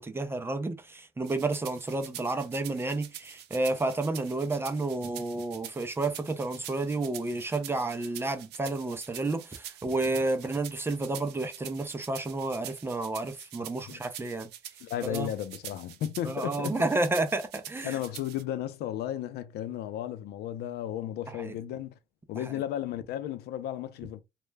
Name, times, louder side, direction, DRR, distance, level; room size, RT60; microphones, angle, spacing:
voice 1, 0.0-14.5 15.0-15.3 16.3-18.0 21.3-21.5 22.4-22.6, right 2 dB, 15° right, 0.4 m, -31 dB
sound 1, 1.2-18.4, right 11 dB, 80° right, 0.5 m, -46 dB
voice 2, 14.8-16.8 17.8-21.9 22.3-24.2, left 11 dB, 75° left, 0.4 m, -34 dB
2.2 x 2.0 x 3.2 m
cardioid pair, 110°, 17 cm